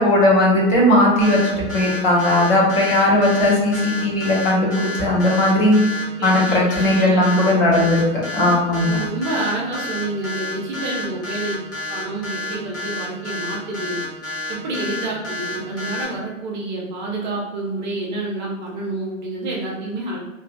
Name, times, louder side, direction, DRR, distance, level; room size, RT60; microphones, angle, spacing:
voice 1, 0.0-5.8 6.2-8.0 8.3-9.0, left 1 dB, 35° left, -4 dB, 0.9 m, -17 dB
sound 1, 1.2-16.0, left 2 dB, 15° left, 0.3 m, -30 dB
voice 2, 6.2-7.4 8.7-11.6 11.9-14.0 14.5-20.2, right 2 dB, 35° right, -3 dB, 0.6 m, -28 dB
2.6 x 2.6 x 2.4 m, 1.1 s
figure-of-eight pair, 115°, 40 cm